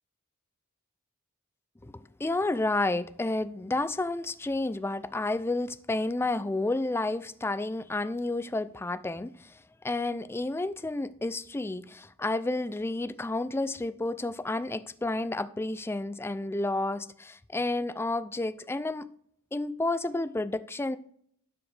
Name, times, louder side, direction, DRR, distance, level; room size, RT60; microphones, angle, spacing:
voice 1, 1.8-9.3 9.8-19.1 19.5-21.0, left 2 dB, 10° left, 0.3 m, -30 dB
11.5 x 5.0 x 3.3 m
head